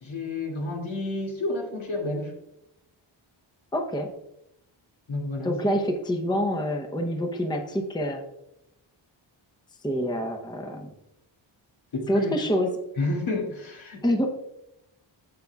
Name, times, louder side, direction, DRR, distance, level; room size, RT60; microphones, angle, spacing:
voice 1, 0.0-2.3 5.1-5.5 11.9-12.3 13.0-14.0, left 2 dB, 75° left, -1 dB, 2.4 m, -30 dB
voice 2, 3.7-4.1 5.4-8.2 9.8-10.9 12.1-12.7 14.0-14.3, equal, 10° left, 4 dB, 0.7 m, -26 dB
14.5 x 5.3 x 2.3 m, 0.86 s
wide cardioid pair, 130°, 48 cm